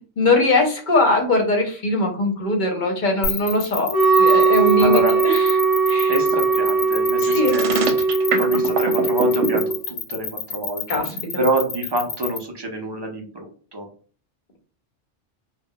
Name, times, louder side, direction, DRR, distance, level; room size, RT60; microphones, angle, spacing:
voice 1, 0.0-5.6 5.9-6.1 7.2-7.6 10.9-11.2, left 2 dB, 50° left, 2 dB, 0.7 m, -21 dB
sound 1, 3.2-12.4, left 6 dB, 90° left, 0.9 m, -28 dB
Wind instrument woodwind instrument, 3.9-9.8, right 4 dB, 10° left, 0.6 m, -19 dB
voice 2, 4.8-5.1 6.1-7.7 8.0-11.0 11.4-13.9, right 1 dB, 35° right, 1 dB, 0.4 m, -26 dB
sound 2, 7.4-9.6, right 4 dB, 85° right, 0.9 m, -23 dB
2.2 x 2.1 x 3.6 m, 0.41 s
omnidirectional pair, 1.2 m